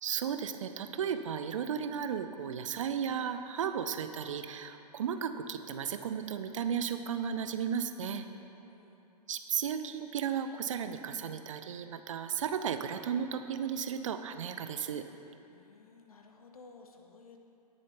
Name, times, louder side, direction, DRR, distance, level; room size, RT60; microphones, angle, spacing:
voice 1, 0.0-8.2 9.3-15.0, right 8 dB, 50° right, 9 dB, 0.6 m, -34 dB
voice 2, 8.5-9.1 15.5-17.4, left 4 dB, 60° left, 4 dB, 1.1 m, -56 dB
17.5 x 7.1 x 3.0 m, 2.8 s
figure-of-eight pair, 115°, 21 cm